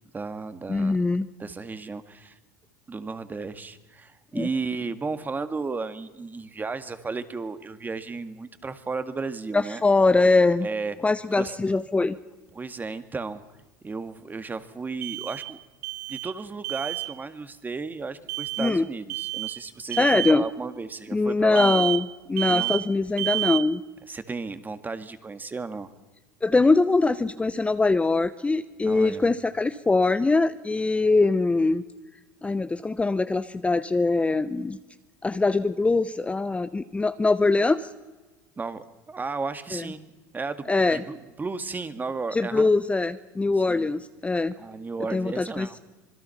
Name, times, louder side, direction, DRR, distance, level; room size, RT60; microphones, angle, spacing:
voice 1, 0.1-1.0 1.4-2.4 2.9-9.8 10.6-11.0 11.3-11.6 12.5-13.4 13.8-15.6 16.1-21.9 22.5-22.7 24.1-25.9 28.8-29.3 38.6-42.7 43.7-43.9 44.6-45.8, right 4 dB, 20° right, 11 dB, 1.9 m, -34 dB
voice 2, 0.7-1.3 4.3-4.5 9.5-10.7 11.0-12.2 18.6-18.9 20.0-20.4 21.1-23.8 26.4-31.8 32.4-34.8 35.2-37.9 39.7-39.9 40.7-41.0 42.3-44.5 45.1-45.8, left 3 dB, 15° left, 12 dB, 0.9 m, -22 dB
sound 1, 11.8-11.9 15.0-15.6 15.8-16.4 16.6-17.1 18.3-18.8 19.1-19.6 19.9-20.4 21.6-22.1 22.4-22.9 23.2-23.7, right 24 dB, 75° right, 1.3 m, -30 dB
26.0 x 21.0 x 5.8 m, 1.2 s
hypercardioid pair, 90°, 9 cm